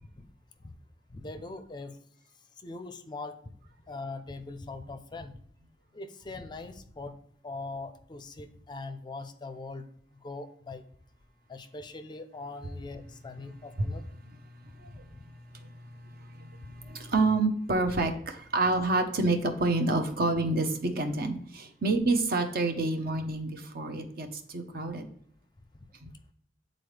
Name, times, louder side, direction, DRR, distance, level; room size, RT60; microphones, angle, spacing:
voice 1, 1.1-2.0 2.6-3.4 3.9-5.4 5.9-7.1 7.4-9.8 10.2-10.8 11.5-14.0, left 3 dB, 25° left, 10 dB, 0.4 m, -41 dB
voice 2, 16.4-25.0 26.0-26.1, right 2 dB, 55° right, 6 dB, 0.8 m, -28 dB
8.7 x 4.0 x 3.3 m, 0.64 s
head